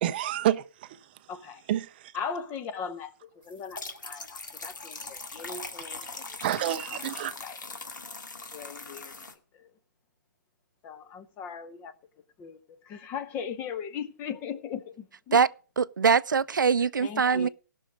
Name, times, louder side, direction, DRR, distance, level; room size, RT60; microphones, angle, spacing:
voice 1, 0.0-1.3 1.7-2.2 6.4-7.4, right 12 dB, 30° right, 0.5 m, -29 dB
voice 2, 1.3-1.6 2.1-6.2 6.6-7.0 7.4-7.6 8.5-9.1 9.5-9.7 10.8-11.9 12.4-15.4 17.0-17.5, left 6 dB, 20° left, 0.8 m, -39 dB
sound 1, 3.5-9.3, left 3 dB, 75° left, 2.0 m, -40 dB
voice 3, 15.8-17.5, right 6 dB, 80° right, 0.5 m, -23 dB
16.0 x 6.2 x 5.1 m
hypercardioid pair, 145°, 10 cm